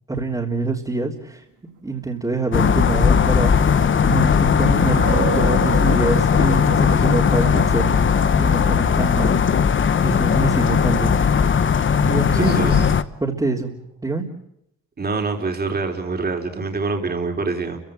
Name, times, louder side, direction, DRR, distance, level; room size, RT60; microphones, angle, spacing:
voice 1, 0.1-1.4 1.8-3.6 4.0-7.9 8.4-9.4 10.0-11.2 12.0-12.8 13.2-13.7 14.0-14.2, right 3 dB, 15° right, -3 dB, 3.6 m, -25 dB
sound 1, 2.4-13.8, right 9 dB, 80° right, 2.8 m, -35 dB
sound 2, 2.5-13.0, left 6 dB, 40° left, 1.2 m, -18 dB
voice 2, 12.3-12.8 15.0-17.8, right 3 dB, 30° right, 3 dB, 4.2 m, -25 dB
29.5 x 16.5 x 8.9 m, 0.78 s
cardioid pair, 90°, 30 cm